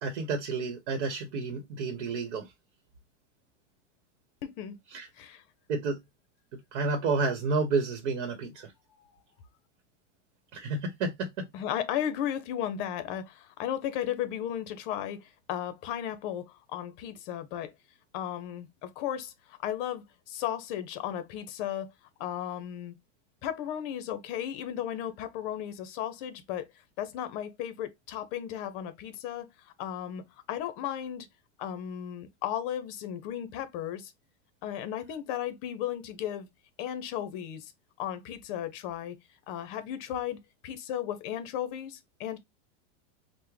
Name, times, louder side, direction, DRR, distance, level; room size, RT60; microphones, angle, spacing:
voice 1, 0.0-2.4 4.9-5.1 5.7-6.0 6.7-8.7 10.5-11.4, right 4 dB, 65° right, 1.0 m, -30 dB
voice 2, 4.4-4.8 5.2-5.4 8.9-9.1 11.5-17.7 18.1-21.9 22.2-22.9 23.4-26.7 27.0-31.3 31.6-34.1 34.6-36.5 36.8-37.7 38.0-39.2 39.5-42.4, left 10 dB, 45° left, 0.7 m, -35 dB
3.5 x 2.1 x 3.1 m
supercardioid pair, 155°, 36 cm